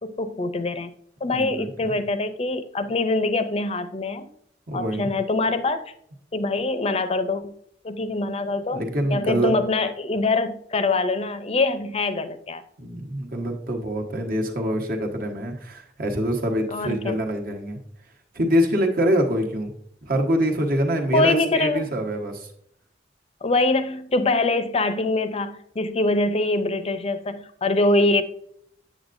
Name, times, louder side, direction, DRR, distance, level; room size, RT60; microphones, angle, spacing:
voice 1, 0.0-0.9 1.2-4.3 4.7-5.8 6.3-7.5 7.8-8.8 9.1-12.6 16.7-17.2 21.1-21.8 23.4-28.2, left 2 dB, 35° left, 11 dB, 0.5 m, -24 dB
voice 2, 1.3-1.9 4.7-5.1 8.7-9.5 12.8-17.8 18.3-19.7 20.0-22.5, equal, 55° right, 3 dB, 1.2 m, -25 dB
8.0 x 7.6 x 2.6 m, 0.67 s
head